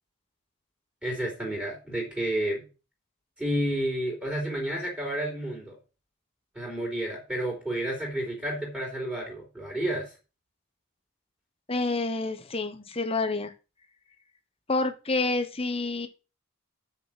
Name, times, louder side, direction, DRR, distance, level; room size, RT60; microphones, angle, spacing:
voice 1, 1.0-2.6 3.4-5.7 6.5-10.1, right 1 dB, 5° right, -2 dB, 3.8 m, -30 dB
voice 2, 11.7-13.5 14.7-16.1, left 3 dB, 25° left, 8 dB, 1.1 m, -28 dB
7.1 x 6.7 x 7.6 m, 0.32 s
head